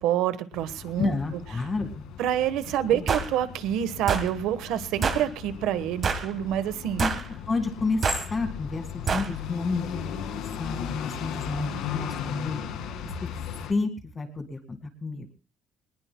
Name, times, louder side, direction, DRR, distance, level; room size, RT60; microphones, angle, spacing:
voice 1, 0.0-1.1 2.2-7.0, right 11 dB, 80° right, 12 dB, 1.2 m, -27 dB
sound 1, 0.5-13.7, left 9 dB, 80° left, 1.9 m, -37 dB
voice 2, 1.0-2.0 2.9-3.0 7.0-7.1 7.5-10.2 10.6-12.6 13.2-13.3 13.7-15.3, left 3 dB, 20° left, 7 dB, 1.9 m, -30 dB
sound 2, 3.1-3.3 4.1-4.3 5.0-5.3 6.0-6.3 7.0-7.3 8.0-8.3 9.1-9.3, right 5 dB, 30° right, 1.4 m, -26 dB
23.0 x 20.0 x 2.2 m, 0.35 s
cardioid pair, 175°, 0 cm